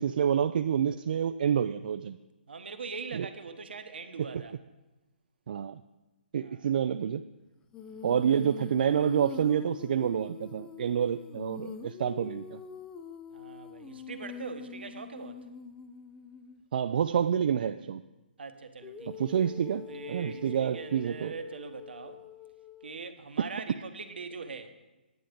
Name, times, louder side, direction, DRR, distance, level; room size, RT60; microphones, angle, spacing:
voice 1, 0.0-2.2 3.1-3.3 4.2-4.4 5.5-5.8 6.3-7.2 8.0-12.6 16.7-18.0 19.1-21.3, right 8 dB, 55° right, 9 dB, 0.3 m, -28 dB
voice 2, 2.5-4.5 6.4-6.7 7.8-8.4 13.3-15.4 18.4-19.3 19.7-22.2 22.8-24.7, right 5 dB, 75° right, 7 dB, 1.2 m, -42 dB
Female singing, 7.7-16.6 18.8-23.0, left 7 dB, 10° left, 0.4 m, -45 dB
9.9 x 8.8 x 5.1 m, 1.0 s
hypercardioid pair, 150°, 6 cm